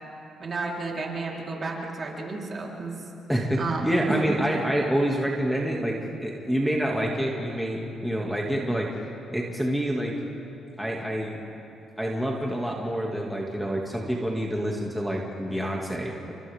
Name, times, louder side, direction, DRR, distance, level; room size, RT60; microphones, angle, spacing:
voice 1, 0.4-3.0 3.6-4.2, right 3 dB, 40° right, -2 dB, 4.0 m, -32 dB
voice 2, 3.3-8.9 9.3-10.2 10.8-11.4 12.0-16.3, right 1 dB, 5° right, -2 dB, 2.3 m, -27 dB
30.0 x 25.5 x 3.7 m, 2.8 s
cardioid pair, 90°, 0 cm